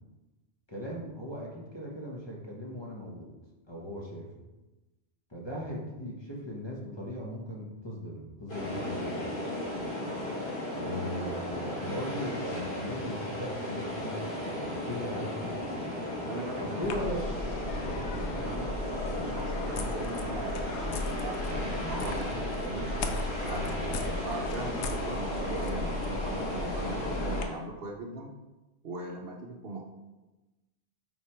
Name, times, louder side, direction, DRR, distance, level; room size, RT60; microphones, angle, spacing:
voice 1, 0.7-3.3 3.7-4.5 5.3-9.3 10.7-15.7 16.6-17.3 23.4-23.7, equal, 25° left, -3 dB, 1.0 m, -38 dB
sound 1, 8.5-27.5, left 1 dB, 45° left, 2.3 m, -35 dB
voice 2, 16.3-17.2 17.7-18.7 19.2-22.9 23.5-28.3 28.8-29.8, right 2 dB, 60° right, 1 dB, 0.9 m, -40 dB
sound 2, 16.8-27.4, left 2 dB, 75° left, 0.9 m, -36 dB
5.2 x 4.5 x 4.3 m, 1.1 s
omnidirectional pair, 1.2 m